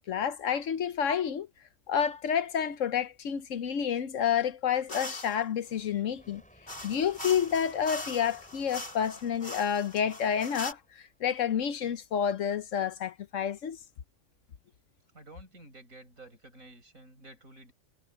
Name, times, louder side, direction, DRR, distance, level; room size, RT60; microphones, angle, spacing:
voice 1, 0.1-1.5 1.9-6.4 6.8-10.8 11.2-13.8, left 8 dB, 70° left, 1.1 m, -29 dB
sound 1, 4.9-5.4 6.7-10.7, left 1 dB, 50° left, 5.9 m, -41 dB
sound 2, 5.7-11.3, equal, 5° left, 7.2 m, -59 dB
voice 2, 15.1-17.7, right 2 dB, 85° right, 7.6 m, -51 dB
omnidirectional pair, 1.4 m